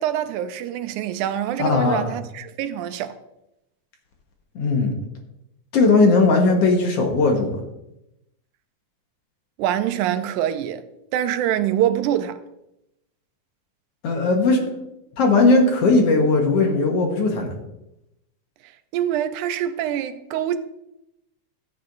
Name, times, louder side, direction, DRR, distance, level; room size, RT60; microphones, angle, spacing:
voice 1, 0.0-3.2 9.6-10.8 11.1-12.4 18.6-20.6, right 11 dB, 90° right, 2.1 m, -25 dB
voice 2, 1.6-2.1 4.6-4.9 5.7-7.6 14.0-14.6 15.2-17.5, left 3 dB, 60° left, 2.2 m, -18 dB
14.0 x 8.6 x 2.6 m
omnidirectional pair, 3.4 m